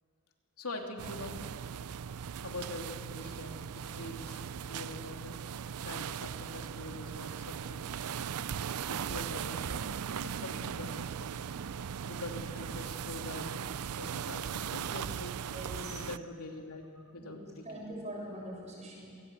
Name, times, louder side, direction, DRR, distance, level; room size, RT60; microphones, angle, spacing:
voice 1, 0.6-1.4 2.4-3.6 3.9-4.4 4.7-5.3 5.8-7.9 8.9-9.9 10.2-11.3 12.0-13.6 13.9-15.4 15.9-17.8, left 2 dB, 85° left, 2 dB, 3.0 m, -44 dB
sound 1, 1.0-16.2, right 7 dB, 80° right, 0.5 m, -38 dB
voice 2, 15.5-16.1 17.2-17.3 17.6-19.1, equal, 30° right, -1 dB, 7.2 m, -42 dB
27.0 x 19.0 x 8.2 m, 2.5 s
head